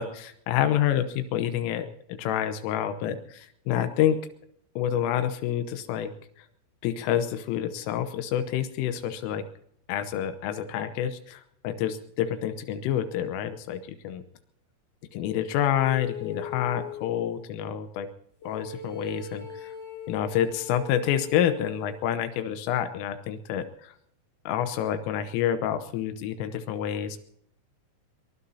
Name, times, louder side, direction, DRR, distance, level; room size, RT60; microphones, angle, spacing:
voice 1, 0.0-4.2 4.8-6.1 6.4-6.5 6.8-9.5 9.9-14.2 15.1-18.1 18.4-19.7 20.1-23.9 24.5-27.2, left 10 dB, 85° left, 9 dB, 3.5 m, -28 dB
sound 1, 15.7-17.4 18.4-22.0, left 8 dB, 10° left, 5.7 m, -40 dB
23.0 x 22.5 x 2.8 m, 0.70 s
omnidirectional pair, 5.9 m